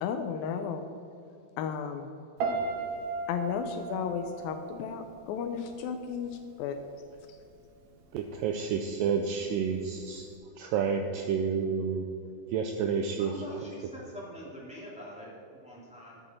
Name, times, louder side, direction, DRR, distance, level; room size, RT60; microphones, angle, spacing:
voice 1, 0.0-0.9 1.6-2.1 3.3-6.8, left 7 dB, 80° left, 7 dB, 2.2 m, -34 dB
Piano, 2.4-5.5 5.8-6.2, right 3 dB, 65° right, 2.0 m, -35 dB
voice 2, 8.1-10.3 10.6-12.1 12.5-13.4, right 6 dB, 85° right, 5 dB, 1.9 m, -30 dB
voice 3, 13.2-16.2, equal, 5° right, -7 dB, 1.3 m, -44 dB
11.5 x 8.3 x 4.2 m, 2.6 s
omnidirectional pair, 4.5 m